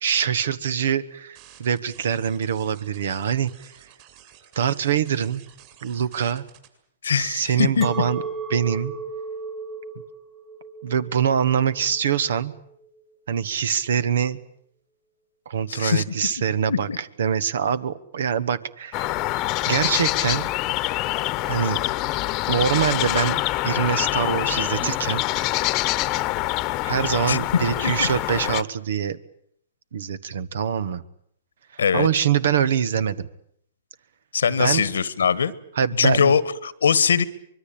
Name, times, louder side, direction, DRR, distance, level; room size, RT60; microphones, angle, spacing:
voice 1, 0.0-3.5 4.5-5.4 5.8-6.4 7.1-8.2 8.5-8.9 10.8-12.5 13.3-14.4 15.4-19.1 19.7-20.5 21.5-21.8 22.5-25.2 26.8-29.2 29.9-31.0 31.7-33.3 34.6-34.8 35.7-36.4, right 8 dB, 70° right, 17 dB, 1.5 m, -24 dB
sound 1, 1.3-6.7, right 11 dB, 45° right, 7.6 m, -51 dB
voice 2, 7.0-7.9 15.7-16.0 16.7-17.0 27.3-27.4 27.8-28.1 31.8-32.1 34.3-35.5 36.0-37.2, left 6 dB, 85° left, 18 dB, 1.5 m, -21 dB
Chink clink, 7.8-13.0, right 3 dB, 25° right, 2.7 m, -35 dB
sound 2, 18.9-28.6, left 18 dB, 35° left, 1.1 m, -25 dB
24.5 x 22.5 x 8.8 m, 0.70 s
hypercardioid pair, 130°, 0 cm